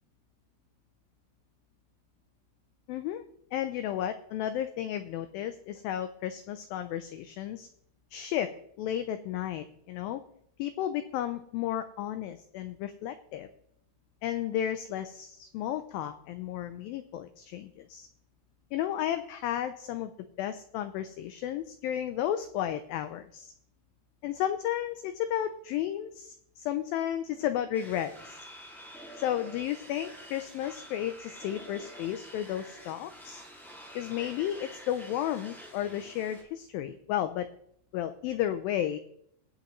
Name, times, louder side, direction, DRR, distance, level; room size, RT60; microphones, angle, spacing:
voice 1, 2.9-3.2 3.5-7.7 8.1-10.2 10.6-13.5 14.2-18.1 18.7-20.1 20.4-23.5 24.2-28.4 29.2-33.4 33.9-37.5 37.9-39.0, left 11 dB, 85° left, 10 dB, 2.1 m, -33 dB
sound 1, 27.7-36.4, equal, ahead, 0.5 m, -48 dB
22.0 x 8.2 x 3.1 m, 0.70 s
omnidirectional pair, 4.7 m